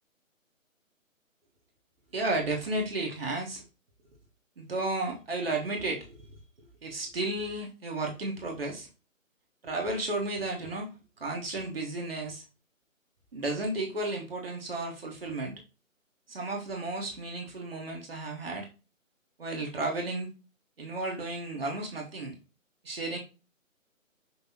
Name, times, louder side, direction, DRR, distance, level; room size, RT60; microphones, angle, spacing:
voice 1, 2.1-3.6 4.6-6.2 6.8-8.9 9.6-10.9 11.2-12.4 13.3-15.6 16.3-18.7 19.4-20.3 20.8-22.4 22.8-23.2, right 2 dB, 45° right, 0 dB, 1.2 m, -33 dB
5.6 x 3.2 x 2.8 m, 0.30 s
figure-of-eight pair, 150°, 41 cm